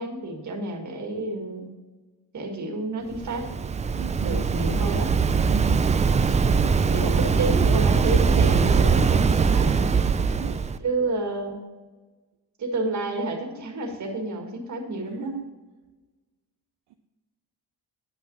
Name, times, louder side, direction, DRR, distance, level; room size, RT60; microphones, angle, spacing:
voice 1, 0.0-1.7 2.3-3.5 4.2-5.1 6.8-9.9 10.8-11.7 12.6-15.3, right 2 dB, 45° right, 3 dB, 2.0 m, -30 dB
Waves surf, 3.1-10.8, right 5 dB, 20° right, 0.3 m, -21 dB
voice 2, 4.0-4.5 5.5-6.0 6.6-6.9 10.4-10.7 15.1-15.5, right 10 dB, 65° right, 5 dB, 0.8 m, -36 dB
9.9 x 5.9 x 5.5 m, 1.2 s
cardioid pair, 135°, 41 cm